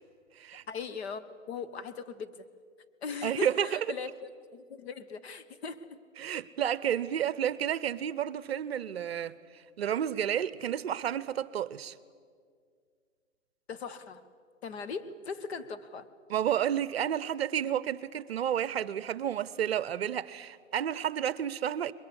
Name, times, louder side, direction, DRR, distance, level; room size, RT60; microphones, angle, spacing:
voice 1, 0.7-2.4 3.0-4.1 4.5-6.0 13.7-14.2 14.6-16.1, left 5 dB, 50° left, 1.4 m, -39 dB
voice 2, 3.2-3.9 6.2-11.9 16.3-21.9, right 9 dB, 50° right, 0.8 m, -31 dB
22.0 x 21.5 x 8.2 m
hypercardioid pair, 140°, 40 cm